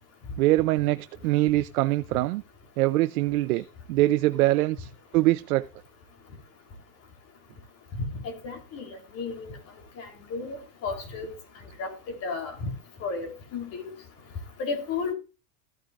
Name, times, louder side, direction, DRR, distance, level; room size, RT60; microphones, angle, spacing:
voice 1, 0.4-2.4 2.8-5.7, right 17 dB, 80° right, 0.6 m, -23 dB
voice 2, 8.4-9.5 10.0-10.6 10.8-11.3 11.8-12.7 13.0-13.9 14.6-15.1, left 4 dB, 35° left, 3.5 m, -33 dB
14.5 x 9.2 x 2.5 m
supercardioid pair, 145°, 43 cm